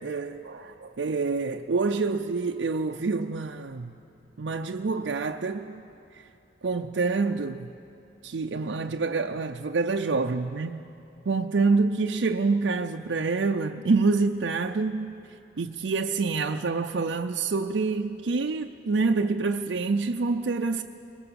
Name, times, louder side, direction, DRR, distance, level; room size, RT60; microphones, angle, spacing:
voice 1, 0.0-4.0 4.4-5.8 6.6-7.7 8.2-10.8 11.3-15.2 15.6-20.8, right 4 dB, 70° right, 0.5 m, -27 dB
21.5 x 19.5 x 7.0 m
head